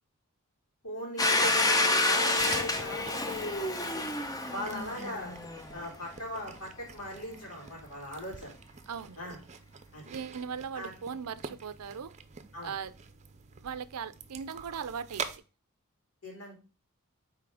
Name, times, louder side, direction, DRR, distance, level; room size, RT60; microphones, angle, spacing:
voice 1, 0.8-4.1 4.5-5.3 5.7-8.6 9.2-9.4 9.9-10.1 10.7-10.9 12.5-12.7 16.2-16.6, equal, 85° left, 3.3 m, -40 dB
Domestic sounds home sounds, 1.2-5.8, left 2 dB, 15° left, 0.7 m, -28 dB
sound 1, 2.4-15.4, right 5 dB, 30° right, 0.6 m, -46 dB
voice 2, 8.9-9.2 10.1-12.1 12.6-12.9 13.6-15.3, right 6 dB, 75° right, 0.5 m, -38 dB
5.9 x 4.5 x 4.9 m
head